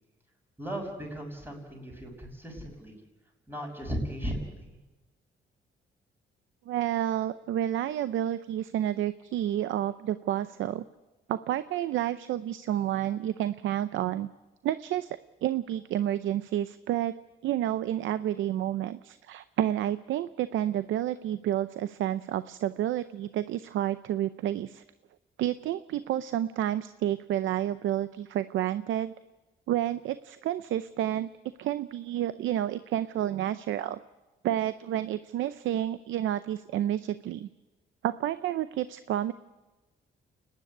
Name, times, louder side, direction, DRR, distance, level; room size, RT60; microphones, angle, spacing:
voice 1, 0.6-3.0 3.5-4.8, equal, 10° right, 0 dB, 6.3 m, -36 dB
voice 2, 6.7-10.8 11.3-14.3 14.6-17.1 17.4-24.8 25.4-29.1 29.7-31.3 31.6-34.0 34.4-37.5 38.0-39.3, right 12 dB, 75° right, 14 dB, 0.6 m, -30 dB
29.5 x 10.5 x 9.7 m, 1.1 s
cardioid pair, 90°, 20 cm